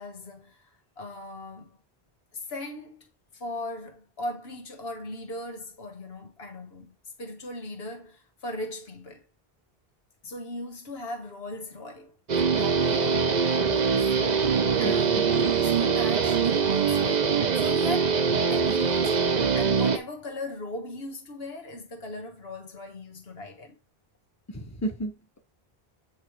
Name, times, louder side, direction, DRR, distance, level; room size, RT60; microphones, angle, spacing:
voice 1, 0.0-1.8 2.3-3.0 3.3-9.3 10.2-14.1 14.8-23.7, left 1 dB, 75° left, 1.6 m, -38 dB
Guitar, 12.3-20.0, right 6 dB, 45° right, 0.9 m, -23 dB
voice 2, 14.8-15.3 24.5-25.4, right 1 dB, 15° left, 1.2 m, -33 dB
8.4 x 3.3 x 4.7 m
omnidirectional pair, 1.0 m